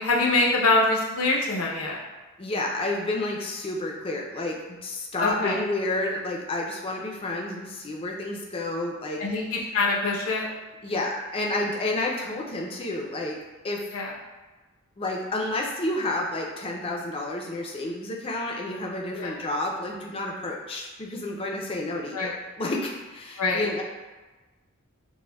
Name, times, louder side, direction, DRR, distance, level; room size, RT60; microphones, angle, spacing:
voice 1, 0.0-2.0 5.2-5.6 9.2-10.5 13.9-14.1 19.1-19.3 22.1-22.3 23.4-23.7, left 3 dB, 80° left, -3 dB, 0.7 m, -24 dB
voice 2, 2.4-9.2 10.8-13.4 13.6-13.9 15.0-22.3 22.6-23.8, left 2 dB, 25° left, -1 dB, 0.4 m, -30 dB
6.2 x 2.1 x 2.2 m, 1.2 s
head